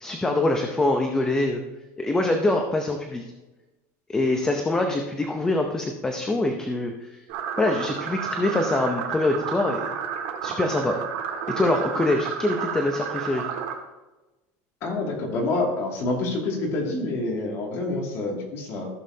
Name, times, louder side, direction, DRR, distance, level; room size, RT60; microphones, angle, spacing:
voice 1, 0.0-1.6 2.0-3.2 4.1-7.2 7.6-9.9 10.4-11.0 11.5-13.5, left 2 dB, 10° left, 3 dB, 0.7 m, -24 dB
sound 1, 7.3-13.7, right 7 dB, 65° right, 1.7 m, -31 dB
voice 2, 14.8-18.9, left 2 dB, 40° left, -1 dB, 2.4 m, -27 dB
15.0 x 7.3 x 2.8 m, 1.1 s
cardioid pair, 170°, 7 cm